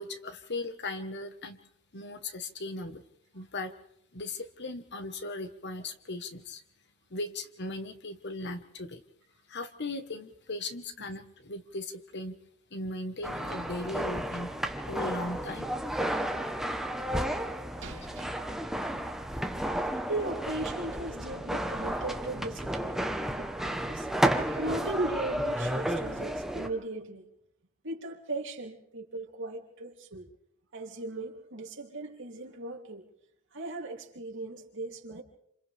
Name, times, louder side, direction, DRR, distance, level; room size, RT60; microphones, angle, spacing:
voice 1, 0.0-1.6 1.9-3.0 3.3-3.7 4.1-6.6 7.1-9.0 9.5-12.4 12.7-14.5 14.9-15.7, left 2 dB, 55° left, 8 dB, 1.4 m, -38 dB
sound 1, 13.2-26.7, right 1 dB, ahead, 1.1 m, -32 dB
voice 2, 17.8-18.3 18.6-19.0 20.1-23.0 23.3-27.2 27.8-30.3 30.7-33.1 33.5-35.2, right 2 dB, 60° right, 0 dB, 3.1 m, -38 dB
28.0 x 27.0 x 3.5 m, 0.74 s
head